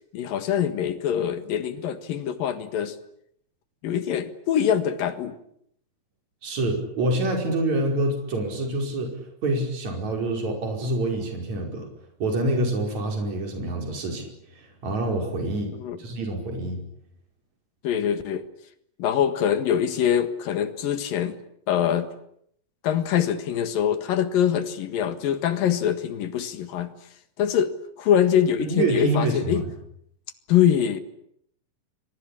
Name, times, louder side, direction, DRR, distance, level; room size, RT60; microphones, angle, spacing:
voice 1, 0.1-3.0 3.8-5.4 15.7-16.0 17.8-18.4 19.0-21.4 21.7-22.1 22.8-26.9 27.4-29.6 30.5-31.0, left 9 dB, 80° left, 10 dB, 3.4 m, -24 dB
voice 2, 6.4-9.1 9.4-11.9 12.2-14.3 14.6-15.7 16.0-16.8 28.6-29.7, right 2 dB, 55° right, 2 dB, 6.5 m, -26 dB
29.5 x 23.0 x 8.6 m, 0.73 s
omnidirectional pair, 3.9 m